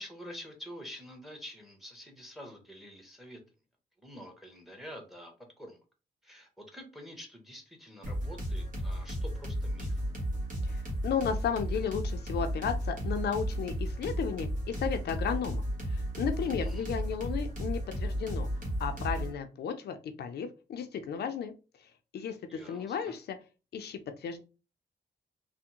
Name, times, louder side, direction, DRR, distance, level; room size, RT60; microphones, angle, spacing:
voice 1, 0.0-3.4 4.0-5.8 6.2-10.0 16.4-16.9 22.5-23.1, equal, ahead, 3 dB, 1.0 m, -47 dB
sound 1, 8.0-19.3, equal, 50° right, 1.3 m, -34 dB
voice 2, 10.6-18.5 18.8-21.5 21.8-23.4 23.7-24.4, left 7 dB, 70° left, 7 dB, 0.4 m, -34 dB
3.4 x 2.1 x 2.9 m, 0.32 s
cardioid pair, 80°, 17 cm